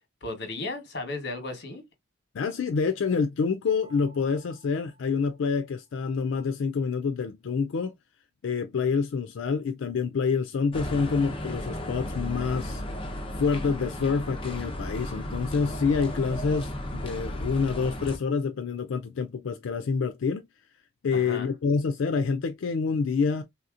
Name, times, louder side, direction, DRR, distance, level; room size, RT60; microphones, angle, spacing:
voice 1, 0.2-1.8 21.1-21.5, left 2 dB, 60° left, 1.2 m, -35 dB
voice 2, 2.3-7.9 8.4-12.8 13.4-20.5 21.0-23.4, left 5 dB, 85° left, 0.4 m, -27 dB
sound 1, 3.7-5.8, right 4 dB, 20° right, 1.6 m, -55 dB
sound 2, 10.7-18.2, left 1 dB, 25° left, 0.7 m, -34 dB
3.4 x 2.8 x 2.4 m
head